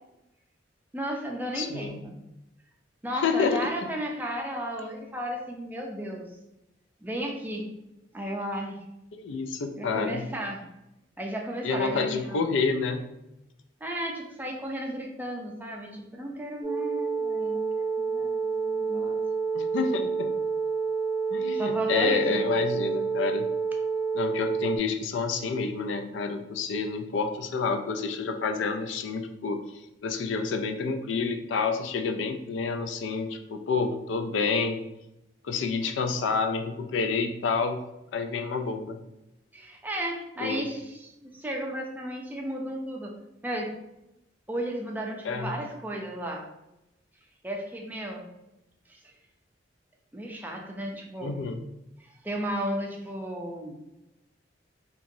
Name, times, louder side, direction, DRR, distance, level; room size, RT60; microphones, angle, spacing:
voice 1, 0.9-2.1 3.0-6.3 7.0-7.6 8.1-8.8 9.8-10.6 11.2-12.4 13.8-19.2 21.5-22.5 39.5-43.1 43.4-43.7 44.5-46.4 47.4-48.3 48.9-49.1 50.1-51.4 52.0-53.7, right 1 dB, 10° right, 0 dB, 0.4 m, -34 dB
voice 2, 1.6-2.0 3.1-3.6 9.1-10.3 11.6-13.1 19.5-20.3 21.3-23.5 24.1-29.6 30.0-34.8 35.4-37.8 38.1-39.0 40.4-40.6 45.2-45.5 51.2-51.6, left 4 dB, 80° left, 6 dB, 0.4 m, -28 dB
sound 1, 16.6-24.8, right 5 dB, 55° left, 0.7 m, -29 dB
2.9 x 2.6 x 2.6 m, 0.90 s
head